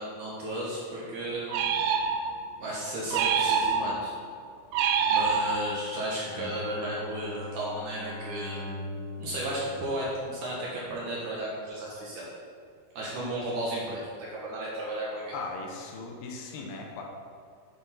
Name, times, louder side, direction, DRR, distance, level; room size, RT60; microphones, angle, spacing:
voice 1, 0.0-1.7 2.6-4.1 5.1-8.6 9.2-12.2 13.0-15.3, right 1 dB, 65° right, -5 dB, 2.8 m, -34 dB
sound 1, 1.5-2.5 3.1-4.2 4.7-5.9, right 6 dB, 85° right, 2.6 m, -26 dB
Bowed string instrument, 6.3-10.7, left 2 dB, 70° left, 3.2 m, -41 dB
voice 2, 15.3-17.0, left 3 dB, 90° left, 0 dB, 3.1 m, -38 dB
9.0 x 7.7 x 4.3 m, 2.2 s
omnidirectional pair, 4.4 m